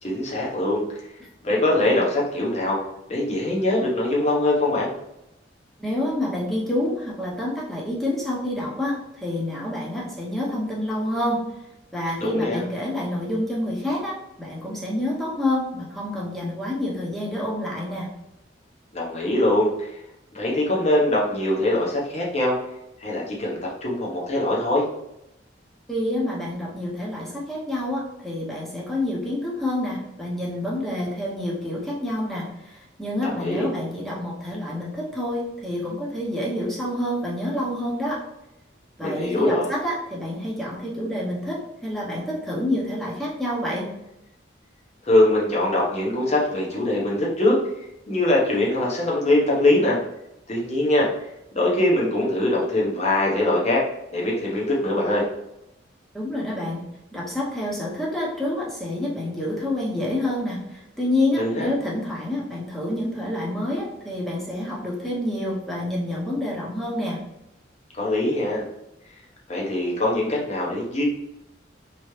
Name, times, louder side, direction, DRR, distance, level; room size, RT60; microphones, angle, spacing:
voice 1, 0.0-1.0 1.4-2.8 3.1-4.9 12.2-12.6 18.9-19.9 20.3-22.6 23.0-24.9 33.2-33.7 39.0-39.7 45.0-50.0 50.5-51.1 51.5-53.8 54.1-55.2 61.4-61.7 68.0-68.6 69.5-71.1, left 1 dB, 35° left, -3 dB, 0.9 m, -22 dB
voice 2, 5.8-11.4 11.9-18.1 25.9-38.2 39.0-43.9 56.1-56.8 57.1-67.2, left 1 dB, ahead, -5 dB, 0.8 m, -28 dB
3.4 x 3.1 x 3.1 m, 0.87 s
head